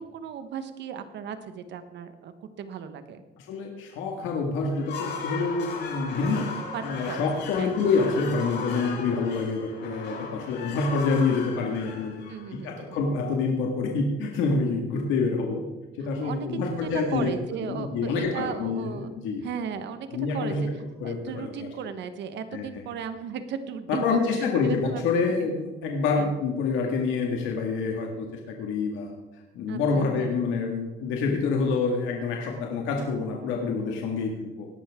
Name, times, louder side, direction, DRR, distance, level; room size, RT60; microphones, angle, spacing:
voice 1, 0.0-3.2 6.7-7.2 7.6-7.7 12.3-13.0 16.2-19.1 19.4-20.7 21.0-25.0 26.2-26.3 29.7-30.3, right 7 dB, 65° right, 10 dB, 1.2 m, -36 dB
voice 2, 3.4-6.5 6.8-12.2 12.5-15.6 16.0-17.3 17.7-19.5 20.1-20.7 21.0-21.7 22.5-22.7 23.9-29.1 29.5-34.7, left 4 dB, 90° left, 0 dB, 2.0 m, -27 dB
sound 1, 4.7-12.8, left 5 dB, 65° left, 3.9 m, -37 dB
18.0 x 11.5 x 3.7 m, 1.1 s
cardioid pair, 110°, 19 cm